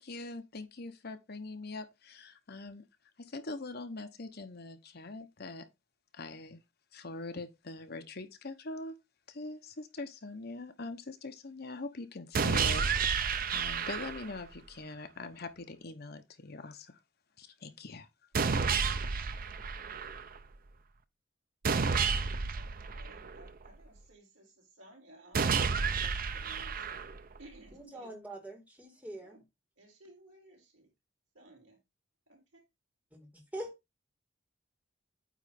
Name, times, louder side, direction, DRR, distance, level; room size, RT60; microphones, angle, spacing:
voice 1, 0.0-2.8 3.2-5.7 6.1-6.6 6.9-9.0 9.3-17.0 17.4-18.1, left 2 dB, 55° left, 1.0 m, -43 dB
sound 1, 12.3-14.4 18.3-20.4 21.6-23.7 25.3-27.4, right 5 dB, 45° right, 0.6 m, -31 dB
voice 2, 22.6-25.6 26.0-27.0 27.4-28.1 29.2-29.4 29.8-30.9 31.3-31.8 32.3-32.6, right 1 dB, 85° right, 4.1 m, -57 dB
voice 3, 27.7-29.4 33.1-33.7, right 1 dB, 10° right, 2.0 m, -44 dB
9.0 x 3.2 x 5.2 m
head